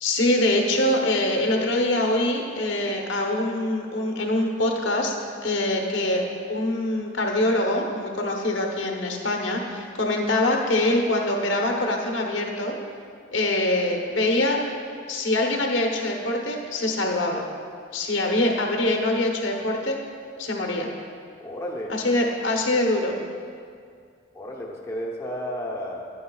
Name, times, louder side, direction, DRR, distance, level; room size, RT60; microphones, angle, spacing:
voice 1, 0.0-5.1 5.4-6.2 6.5-12.7 13.3-14.6 15.1-17.5 17.9-20.0 20.4-20.9 21.9-23.2, left 1 dB, 70° left, 0 dB, 1.0 m, -24 dB
voice 2, 21.4-21.9 24.3-26.1, equal, 15° left, -3 dB, 0.8 m, -32 dB
10.5 x 9.9 x 2.4 m, 2.2 s
head